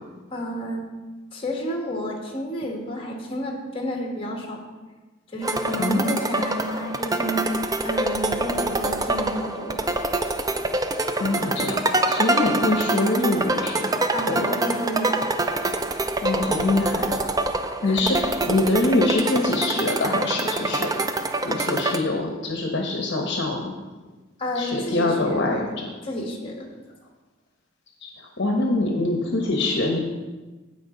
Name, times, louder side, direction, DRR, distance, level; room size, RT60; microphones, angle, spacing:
voice 1, 0.3-0.9 1.3-4.6 5.3-7.6 7.8-9.9 14.1-15.2 17.8-18.2 24.4-25.6 26.0-26.7, equal, 25° left, 0 dB, 1.7 m, -30 dB
sound 1, 5.4-22.0, right 2 dB, 20° right, 0.4 m, -25 dB
voice 2, 5.8-6.1 11.2-14.0 14.3-14.4 16.2-17.3 17.8-21.1 21.4-23.7 24.5-25.9 28.0-28.1 28.4-30.0, left 2 dB, 60° left, 1 dB, 1.0 m, -24 dB
16.0 x 5.4 x 3.9 m, 1.2 s
head